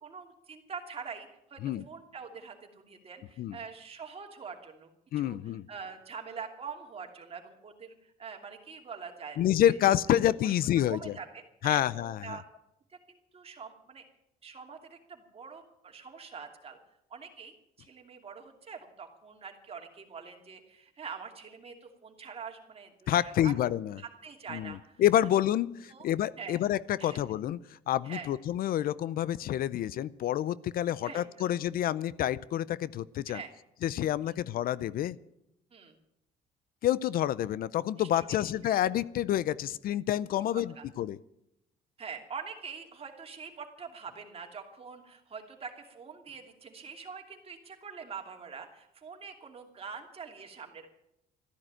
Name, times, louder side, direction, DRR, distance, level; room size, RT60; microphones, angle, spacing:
voice 1, 0.0-4.9 5.2-9.4 9.7-9.8 10.1-10.5 10.9-12.4 12.9-14.0 14.4-16.8 17.1-23.5 24.0-25.0 25.9-26.1 26.4-26.6 27.0-27.2 28.0-28.3 31.0-31.6 33.3-33.5 35.7-36.0 38.0-38.8 40.5-40.8 42.0-50.9, right 6 dB, 35° right, 3 dB, 2.8 m, -45 dB
voice 2, 5.1-5.7 9.4-11.2 11.6-12.4 23.1-24.0 24.5-24.7 25.0-27.6 27.9-33.4 33.8-35.2 36.8-41.2, left 12 dB, 60° left, 19 dB, 0.5 m, -28 dB
14.0 x 11.0 x 9.0 m, 0.82 s
cardioid pair, 110°, 17 cm